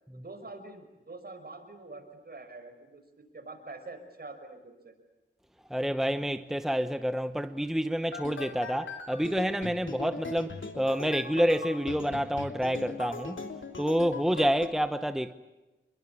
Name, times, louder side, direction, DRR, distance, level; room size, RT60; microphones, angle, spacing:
voice 1, 0.1-4.9, right 3 dB, 50° right, 5.8 m, -45 dB
voice 2, 5.7-13.4 13.8-15.3, equal, ahead, 0.9 m, -28 dB
sound 1, 8.1-14.7, left 3 dB, 75° left, 3.0 m, -40 dB
28.5 x 22.5 x 8.5 m
wide cardioid pair, 80°, 20 cm